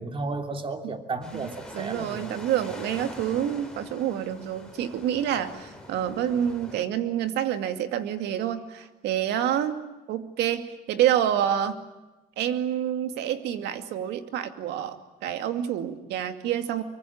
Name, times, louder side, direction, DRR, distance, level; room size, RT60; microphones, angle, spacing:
voice 1, 0.0-2.3, right 3 dB, 30° right, 6 dB, 3.2 m, -33 dB
sound 1, 1.2-6.8, left 2 dB, 5° left, 5.4 m, -44 dB
voice 2, 1.3-9.8 10.1-11.8 12.4-16.8, right 10 dB, 80° right, 9 dB, 2.4 m, -28 dB
25.0 x 24.0 x 8.7 m, 1.1 s
cardioid pair, 110°, 17 cm